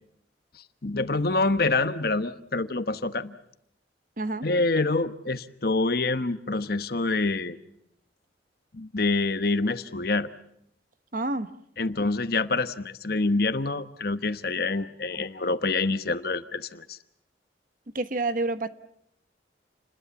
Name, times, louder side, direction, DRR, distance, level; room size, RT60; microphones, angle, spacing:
voice 1, 0.8-3.3 4.4-7.6 8.7-10.3 11.8-17.0, left 3 dB, 55° left, 1.1 m, -26 dB
voice 2, 4.2-4.5 11.1-11.5 17.9-18.7, right 2 dB, 45° right, 1.1 m, -28 dB
29.0 x 21.0 x 7.1 m
head